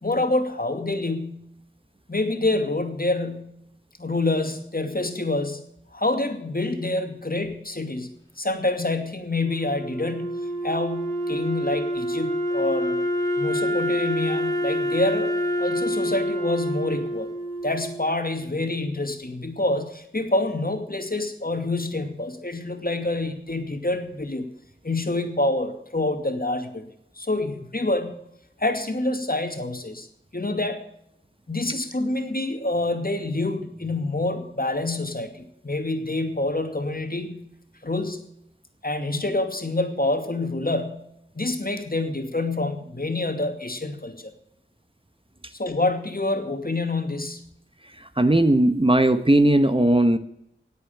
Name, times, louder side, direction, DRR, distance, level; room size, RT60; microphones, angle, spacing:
voice 1, 0.0-1.5 2.1-3.6 4.0-8.1 8.4-13.0 13.4-17.3 17.6-24.5 24.8-26.8 27.2-28.2 28.6-30.1 30.3-30.8 31.5-37.5 37.8-38.2 38.8-41.1 41.3-44.3 45.5-47.5, left 2 dB, 45° left, 6 dB, 2.5 m, -27 dB
Wind instrument woodwind instrument, 9.4-18.5, equal, 15° left, 3.5 m, -27 dB
voice 2, 48.2-50.2, right 1 dB, 25° right, 10 dB, 1.1 m, -18 dB
18.5 x 8.3 x 6.9 m, 0.75 s
wide cardioid pair, 40°, 20 cm